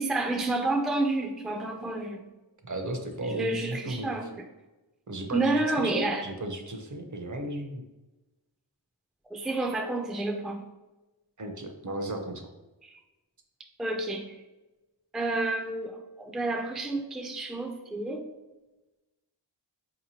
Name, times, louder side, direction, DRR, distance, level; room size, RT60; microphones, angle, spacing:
voice 1, 0.0-2.3 3.2-4.4 5.3-6.2 9.3-10.6 12.8-13.0 13.8-14.3 15.1-18.2, right 2 dB, ahead, 3 dB, 0.3 m, -30 dB
voice 2, 2.6-4.1 5.1-7.8 11.4-12.4, right 1 dB, 45° right, 4 dB, 0.6 m, -35 dB
4.4 x 2.9 x 2.7 m, 1.1 s
wide cardioid pair, 55°, 44 cm